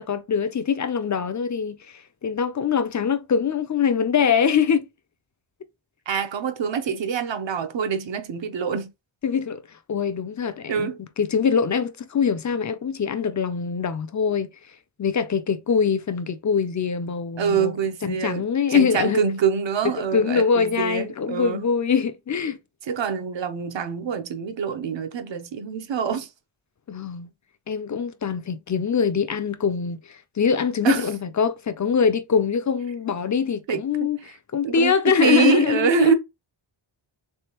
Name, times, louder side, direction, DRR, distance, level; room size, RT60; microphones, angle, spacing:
voice 1, 0.0-4.9 9.2-9.6 9.9-10.9 11.2-14.5 15.0-17.7 18.0-19.2 19.8-22.6 26.9-27.3 27.7-36.2, left 6 dB, 40° left, 0.4 m, -23 dB
voice 2, 6.1-8.9 10.7-11.0 17.4-21.6 22.9-26.3 30.8-31.1 33.7-33.8 34.6-36.2, right 7 dB, 65° right, 0.7 m, -25 dB
3.7 x 3.4 x 2.9 m
wide cardioid pair, 160°, 49 cm